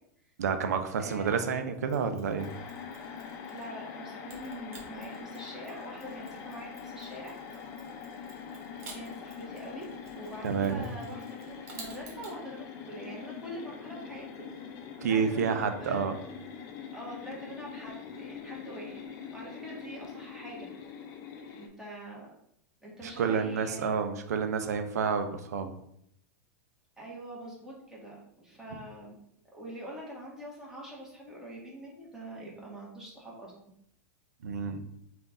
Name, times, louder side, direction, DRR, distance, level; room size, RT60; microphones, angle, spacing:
voice 1, 0.4-2.5 10.4-10.9 15.0-16.2 23.2-25.7 34.4-34.8, right 6 dB, 85° right, 8 dB, 0.5 m, -29 dB
voice 2, 1.0-1.5 3.5-7.3 8.7-14.2 15.0-16.2 16.9-19.0 19.3-20.9 21.6-22.3 22.8-24.0 27.0-29.1 29.5-33.5, right 1 dB, 5° right, -4 dB, 1.4 m, -44 dB
Mechanisms, 1.9-3.8 4.3-12.4, right 3 dB, 60° right, 1.2 m, -53 dB
sound 1, 2.4-21.7, left 6 dB, 45° left, 0.6 m, -43 dB
3.7 x 2.5 x 3.6 m, 0.73 s
hypercardioid pair, 115°, 9 cm